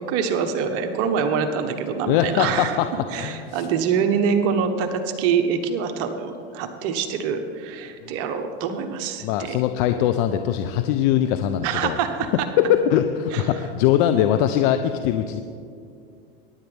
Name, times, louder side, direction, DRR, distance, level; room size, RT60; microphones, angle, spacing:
voice 1, 0.0-2.8 3.1-9.6 11.6-12.3 13.3-13.4, right 6 dB, 55° right, 6 dB, 1.3 m, -25 dB
voice 2, 2.1-2.9 3.1-3.7 8.0-8.1 9.2-12.0 12.6-15.4, left 10 dB, 60° left, 8 dB, 0.8 m, -21 dB
23.5 x 11.0 x 3.6 m, 2.4 s
hypercardioid pair, 100°, 29 cm